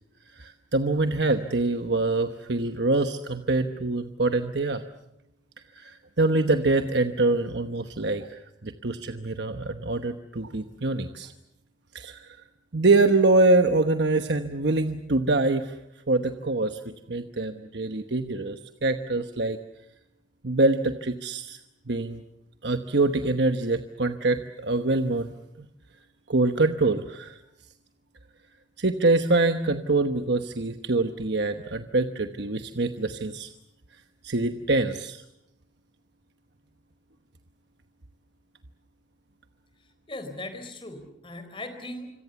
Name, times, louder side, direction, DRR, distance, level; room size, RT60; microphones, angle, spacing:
voice 1, 0.3-4.8 5.7-11.3 11.9-12.4 12.7-15.8 16.1-16.8 17.1-19.6 20.4-21.6 21.9-22.2 22.6-25.7 26.3-27.4 28.8-33.5 34.2-35.2, right 2 dB, 65° right, 8 dB, 1.1 m, -25 dB
voice 2, 39.8-42.1, left 1 dB, 25° left, 8 dB, 4.1 m, -39 dB
26.0 x 25.5 x 7.1 m, 0.82 s
head